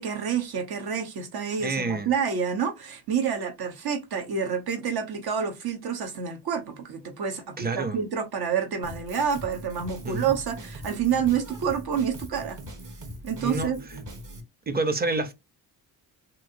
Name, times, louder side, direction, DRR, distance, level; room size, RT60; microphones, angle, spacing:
voice 1, 0.0-12.6 13.2-13.8, right 7 dB, 60° right, 1.1 m, -28 dB
voice 2, 1.6-2.1 7.6-8.0 10.0-10.3 13.4-13.7 14.7-15.3, right 3 dB, 25° right, 0.7 m, -28 dB
Drum kit, 8.8-14.4, right 1 dB, 45° right, 1.4 m, -41 dB
3.1 x 2.9 x 2.6 m
cardioid pair, 70°, 41 cm